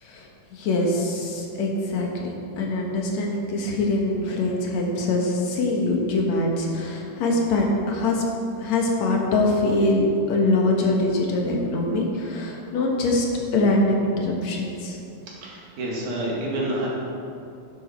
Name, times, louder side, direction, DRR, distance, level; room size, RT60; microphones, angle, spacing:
voice 1, 0.0-8.2 8.6-13.3 13.5-15.0, left 2 dB, 65° left, 0 dB, 2.6 m, -23 dB
voice 2, 15.4-16.9, right 1 dB, 80° right, -4 dB, 3.6 m, -28 dB
11.5 x 10.5 x 4.4 m, 2.6 s
omnidirectional pair, 3.4 m